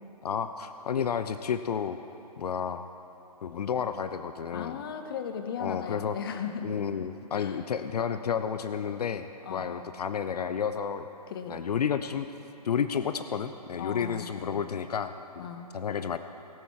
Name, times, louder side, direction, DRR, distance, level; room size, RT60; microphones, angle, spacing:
voice 1, 0.2-2.0 2.4-2.9 3.4-4.8 5.6-6.2 6.6-11.1 11.5-12.3 12.6-15.4 15.7-16.2, left 7 dB, 70° left, 10 dB, 0.5 m, -31 dB
voice 2, 4.5-6.9 7.3-7.6 9.4-9.8 11.3-11.6 13.8-14.7 15.4-15.7, left 7 dB, 35° left, 7 dB, 0.8 m, -37 dB
17.5 x 8.9 x 4.8 m, 3.0 s
hypercardioid pair, 160°, 21 cm